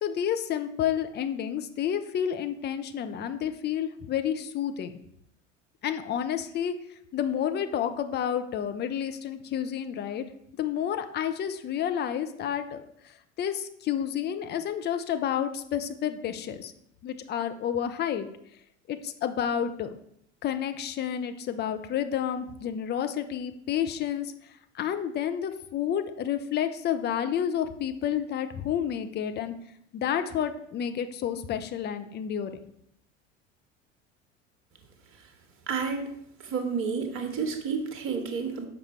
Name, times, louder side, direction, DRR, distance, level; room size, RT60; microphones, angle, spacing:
voice 1, 0.0-4.9 5.8-6.8 7.1-10.2 10.6-12.8 13.4-16.7 17.0-18.3 18.9-19.9 20.4-24.3 24.7-29.5 29.9-32.5, left 9 dB, 25° left, 8 dB, 0.6 m, -30 dB
voice 2, 35.7-36.1 36.4-38.7, right 5 dB, 35° right, 6 dB, 1.4 m, -30 dB
7.3 x 5.2 x 4.4 m, 0.72 s
figure-of-eight pair, 75°, 38 cm